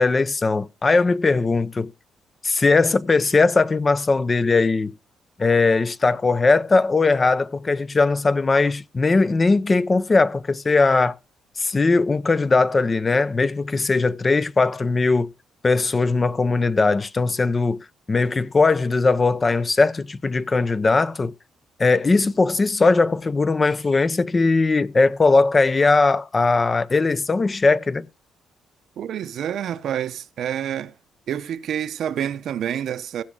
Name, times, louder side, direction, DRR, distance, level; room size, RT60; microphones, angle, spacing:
voice 1, 0.0-1.9 2.4-4.9 5.4-11.1 11.6-15.3 15.6-17.8 18.1-21.3 21.8-28.1, left 3 dB, 30° left, 0.6 m, -19 dB
voice 2, 29.0-30.9 31.3-33.2, right 9 dB, 70° right, 0.7 m, -28 dB
16.0 x 6.0 x 3.7 m
cardioid pair, 90°, 0 cm